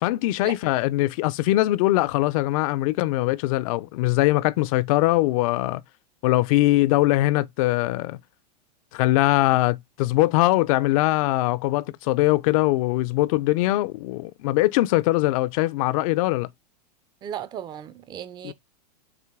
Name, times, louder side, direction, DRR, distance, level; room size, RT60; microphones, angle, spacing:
voice 1, 0.0-5.8 6.2-8.2 8.9-16.5 18.4-18.5, left 18 dB, 55° left, 0.4 m, -22 dB
voice 2, 17.2-18.5, right 9 dB, 20° right, 0.4 m, -35 dB
4.9 x 2.6 x 3.4 m
hypercardioid pair, 115°, 21 cm